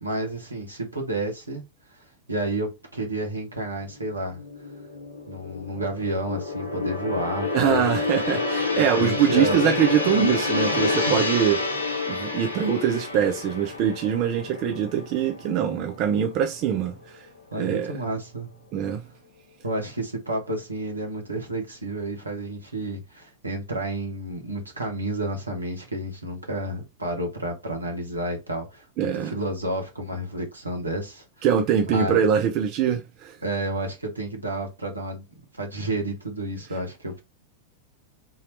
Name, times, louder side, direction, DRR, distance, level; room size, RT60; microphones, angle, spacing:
voice 1, 0.0-1.6 1.9-4.4 5.3-7.8 8.6-9.8 10.0-10.1 10.7-10.8 11.1-11.3 17.5-18.5 19.6-31.2 31.8-32.2 33.4-35.2 35.5-37.2, right 1 dB, 85° right, 1.2 m, -31 dB
Gong, 3.9-16.3 16.7-16.9, left 3 dB, 75° left, 0.8 m, -28 dB
voice 2, 7.5-11.6 12.1-16.9 17.6-17.9 18.7-19.0 29.0-29.3 31.4-33.4, right 8 dB, 40° right, 0.6 m, -23 dB
3.9 x 2.8 x 3.2 m
figure-of-eight pair, 90°, 0 cm